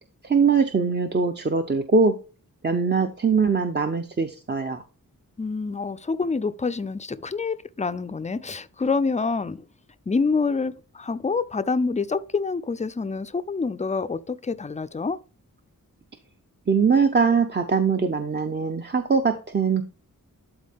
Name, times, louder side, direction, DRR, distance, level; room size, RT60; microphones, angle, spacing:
voice 1, 0.2-2.2 2.6-4.8 16.7-19.8, right 5 dB, 30° right, 0.6 m, -22 dB
voice 2, 5.4-9.6 10.1-15.2, left 4 dB, 20° left, 0.4 m, -27 dB
11.5 x 4.2 x 3.5 m
wide cardioid pair, 125°, 34 cm